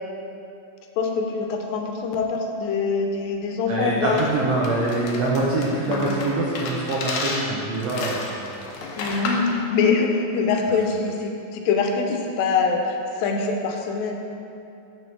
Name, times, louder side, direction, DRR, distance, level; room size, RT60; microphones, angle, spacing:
voice 1, 1.0-4.3 5.8-6.1 9.0-14.1, left 4 dB, 85° left, 3 dB, 2.5 m, -24 dB
voice 2, 3.7-8.4, right 2 dB, 80° right, -5 dB, 1.5 m, -24 dB
sound 1, 4.2-9.5, left 3 dB, 70° left, 2.0 m, -32 dB
6.2 x 6.1 x 6.0 m, 2.7 s
omnidirectional pair, 4.0 m